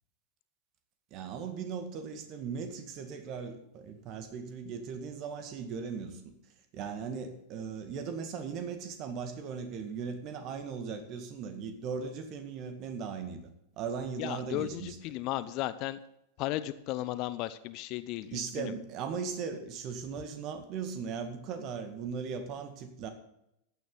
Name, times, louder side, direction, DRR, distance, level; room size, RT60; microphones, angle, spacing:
voice 1, 1.1-6.3 6.7-13.4 13.8-15.0 18.3-23.1, right 6 dB, 40° right, 7 dB, 1.9 m, -38 dB
voice 2, 14.2-16.0 16.4-18.7, left 15 dB, 40° left, 15 dB, 0.6 m, -35 dB
15.0 x 9.5 x 4.0 m, 0.79 s
figure-of-eight pair, 90°, 0 cm